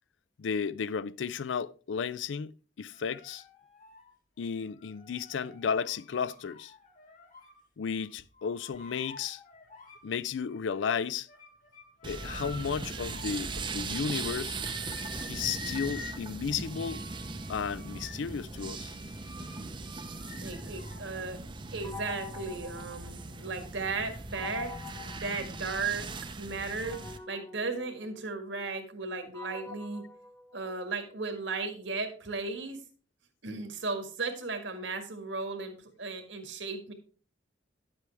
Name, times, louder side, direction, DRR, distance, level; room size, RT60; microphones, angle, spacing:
voice 1, 0.4-3.4 4.4-6.7 7.8-9.4 10.0-11.3 12.0-14.6 15.3-17.0 17.5-18.9, left 6 dB, 80° left, 0.4 m, -33 dB
sound 1, 2.9-7.6 8.0-10.1 10.4-21.2, left 4 dB, 45° left, 1.8 m, -50 dB
sound 2, 12.0-27.2, right 3 dB, 25° right, 0.6 m, -39 dB
voice 2, 20.4-21.4 21.7-26.1 26.4-27.0 27.3-30.0 30.5-32.8 33.4-36.9, right 3 dB, 75° right, 1.8 m, -35 dB
sound 3, 21.8-23.6 24.3-26.1 26.8-31.1, left 5 dB, 20° left, 1.2 m, -47 dB
10.5 x 7.8 x 3.4 m
head